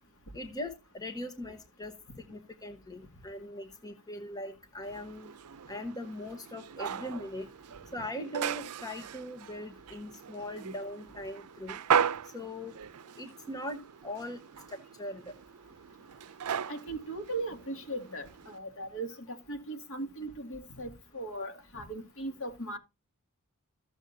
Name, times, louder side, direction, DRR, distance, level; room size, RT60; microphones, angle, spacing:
voice 1, 0.3-1.9 2.3-5.3 5.7-7.5 7.9-11.8 12.2-12.7 13.2-14.4 14.7-15.3, left 1 dB, 15° left, 1.1 m, -40 dB
sound 1, 4.8-18.6, right 8 dB, 80° right, 0.5 m, -37 dB
voice 2, 16.7-22.8, right 2 dB, 65° left, 2.1 m, -38 dB
14.5 x 7.2 x 2.7 m
head